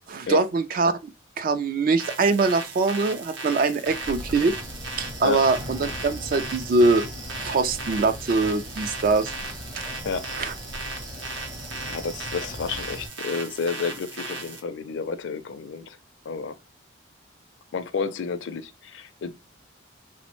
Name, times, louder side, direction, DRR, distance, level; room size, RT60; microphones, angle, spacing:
voice 1, 0.1-0.9 1.4-4.5 5.0-7.1 7.4-9.3 9.8-9.9 10.4-10.5, right 3 dB, 45° right, 0.3 m, -23 dB
sound 1, 2.0-14.6, right 3 dB, 70° right, 0.7 m, -37 dB
Wind, 3.9-13.1, equal, 20° right, 0.7 m, -39 dB
voice 2, 10.0-10.4 11.8-16.0 16.3-16.6 17.7-19.3, left 5 dB, 70° left, 0.4 m, -31 dB
3.3 x 2.1 x 2.9 m
head